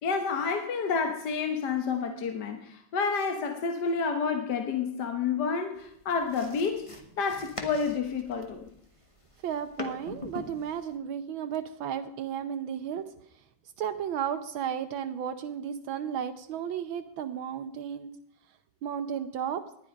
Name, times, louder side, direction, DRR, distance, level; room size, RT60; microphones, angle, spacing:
voice 1, 0.0-8.7, left 5 dB, 60° left, 1.6 m, -29 dB
sound 1, 5.8-11.0, left 3 dB, 15° left, 1.5 m, -42 dB
voice 2, 9.4-13.0 13.8-18.1 18.8-19.6, right 8 dB, 80° right, 1.6 m, -33 dB
19.0 x 11.5 x 5.2 m
omnidirectional pair, 2.2 m